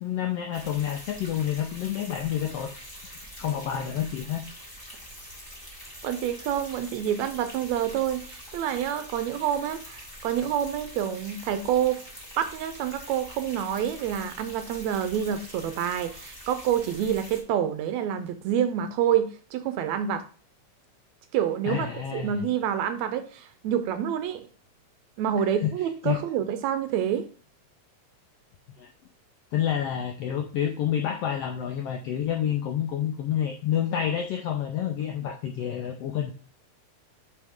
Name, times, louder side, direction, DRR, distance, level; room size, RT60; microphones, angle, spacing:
voice 1, 0.0-2.8 3.4-4.4 21.6-22.5 25.6-25.7 26.0-26.2 28.8-28.9 29.5-36.3, left 10 dB, 80° left, 3 dB, 1.4 m, -28 dB
sound 1, 0.5-17.4, equal, 15° left, 0.9 m, -44 dB
voice 2, 6.0-12.1 12.4-20.2 21.3-24.5 25.2-27.3, right 9 dB, 80° right, 10 dB, 1.7 m, -27 dB
8.3 x 4.7 x 3.6 m, 0.39 s
omnidirectional pair, 3.5 m